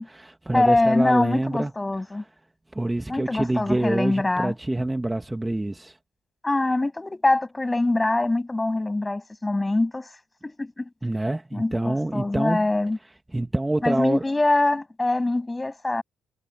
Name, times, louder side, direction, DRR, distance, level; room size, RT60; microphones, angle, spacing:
voice 1, 0.0-1.7 2.7-6.0 11.0-12.7 13.3-14.2, right 1 dB, 10° right, 1.9 m, -26 dB
voice 2, 0.5-2.2 3.1-4.5 6.4-10.1 10.4-10.9 11.5-13.0 13.8-16.0, left 2 dB, 15° left, 7.2 m, -23 dB
cardioid pair, 90°, 0 cm